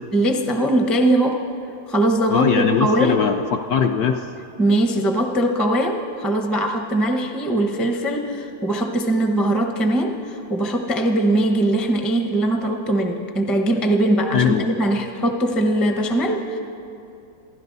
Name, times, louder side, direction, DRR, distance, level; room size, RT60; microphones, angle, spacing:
voice 1, 0.1-1.4 1.9-3.2 4.6-16.6, right 1 dB, ahead, 4 dB, 0.5 m, -21 dB
voice 2, 2.3-4.3 14.3-14.7, left 7 dB, 70° left, 4 dB, 1.0 m, -20 dB
28.0 x 11.5 x 4.0 m, 2.6 s
omnidirectional pair, 2.1 m